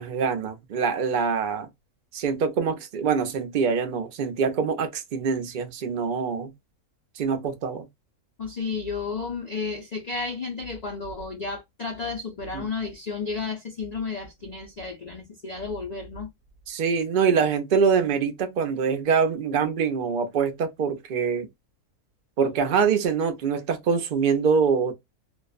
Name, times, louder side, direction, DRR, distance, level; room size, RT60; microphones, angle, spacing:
voice 1, 0.0-1.7 2.1-6.5 7.2-7.9 12.5-12.7 16.7-21.5 22.4-24.9, right 6 dB, 60° right, 0.5 m, -24 dB
voice 2, 8.4-16.3, left 4 dB, 60° left, 0.4 m, -32 dB
2.5 x 2.1 x 2.3 m
omnidirectional pair, 1.6 m